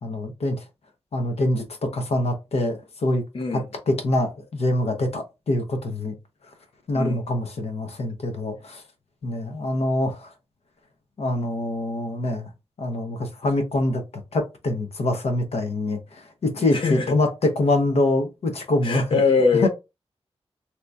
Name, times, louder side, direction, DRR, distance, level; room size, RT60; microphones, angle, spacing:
voice 1, 0.0-0.6 1.1-3.2 3.5-6.2 6.9-8.8 9.2-10.3 11.2-12.5 12.8-14.0 14.3-19.1 19.6-19.7, left 1 dB, 80° left, 0.9 m, -25 dB
voice 2, 16.7-17.2 18.8-19.7, left 4 dB, 55° left, 0.6 m, -22 dB
3.3 x 3.0 x 2.6 m
wide cardioid pair, 155°, 10 cm